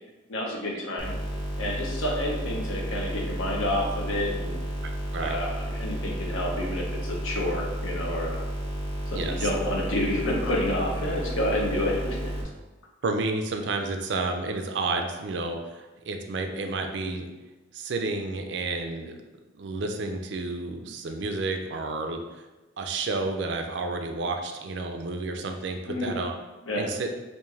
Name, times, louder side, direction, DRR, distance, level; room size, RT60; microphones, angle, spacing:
voice 1, 0.3-1.1 1.6-4.6 5.1-8.4 9.1-12.3 25.9-26.2 26.7-26.9, left 1 dB, 85° left, -1 dB, 0.8 m, -29 dB
sound 1, 1.0-12.4, right 1 dB, 25° left, 0.7 m, -32 dB
voice 2, 9.1-9.5 13.0-17.3 17.7-19.2 19.5-22.4 22.8-26.3 26.8-27.1, right 3 dB, 60° right, 4 dB, 0.4 m, -31 dB
3.5 x 2.6 x 3.2 m, 1.1 s
head